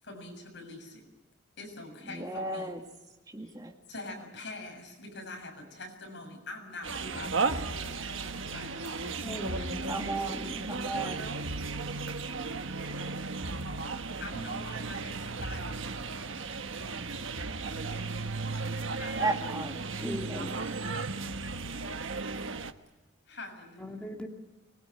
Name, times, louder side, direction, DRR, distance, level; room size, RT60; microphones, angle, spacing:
voice 1, 0.0-1.1 1.6-2.7 3.4-3.5 3.9-8.9 13.9-16.2 18.9-19.6 23.3-24.0, left 2 dB, 60° left, 2 dB, 7.1 m, -44 dB
voice 2, 2.0-2.8 3.3-3.7 9.8-11.3 18.0-18.1 19.1-20.5, right 2 dB, 20° right, 3 dB, 2.0 m, -35 dB
sound 1, 6.8-22.7, right 4 dB, 75° right, 1.3 m, -35 dB
voice 3, 9.2-10.7 20.0-20.6 23.8-24.3, left 1 dB, 5° left, 0 dB, 2.4 m, -39 dB
25.0 x 21.5 x 9.3 m, 1.1 s
head